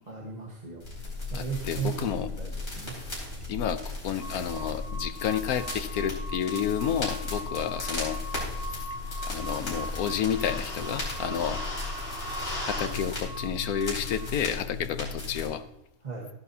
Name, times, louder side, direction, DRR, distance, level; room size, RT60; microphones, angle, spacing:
voice 1, 0.1-0.8 1.3-3.0 16.0-16.3, right 5 dB, 30° right, -1 dB, 1.4 m, -36 dB
sound 1, 0.8-15.5, left 2 dB, 50° left, 4.9 m, -35 dB
voice 2, 1.3-2.3 3.5-8.2 9.2-11.6 12.6-15.6, left 9 dB, 85° left, 10 dB, 1.2 m, -30 dB
sound 2, 4.2-14.3, equal, 5° right, 4.4 m, -41 dB
13.5 x 11.0 x 2.8 m, 0.85 s
omnidirectional pair, 1.5 m